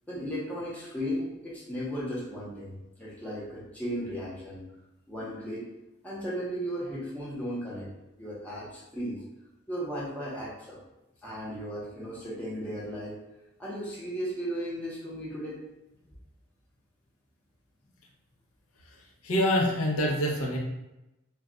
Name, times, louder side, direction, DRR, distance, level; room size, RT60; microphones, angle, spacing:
voice 1, 0.1-4.6 5.1-5.7 6.0-7.9 8.2-9.2 9.7-10.8 11.2-13.2 13.6-15.6, equal, 5° left, -7 dB, 0.7 m, -35 dB
voice 2, 18.8-20.6, equal, 75° left, -2 dB, 0.6 m, -26 dB
2.3 x 2.2 x 3.7 m, 0.95 s
head